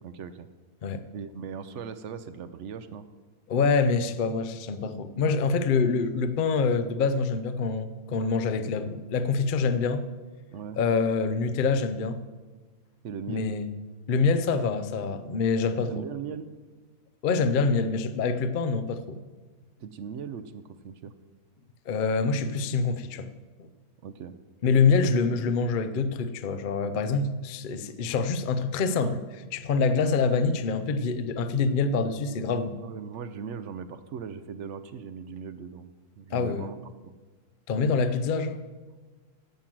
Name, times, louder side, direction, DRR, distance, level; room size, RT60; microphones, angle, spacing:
voice 1, 0.0-0.5 1.1-3.1 5.8-5.9 10.5-10.8 13.0-13.5 15.9-16.5 19.8-21.1 24.0-24.3 32.8-35.9 36.2-36.8 37.0-37.1, right 7 dB, 65° right, 12 dB, 0.8 m, -39 dB
voice 2, 3.5-10.1 10.8-12.2 13.3-13.7 14.1-16.0 17.2-19.2 21.9-23.3 24.6-32.8 36.3-36.7 37.7-38.6, left 4 dB, 60° left, 11 dB, 0.5 m, -26 dB
10.5 x 7.5 x 7.5 m, 1.3 s
omnidirectional pair, 1.7 m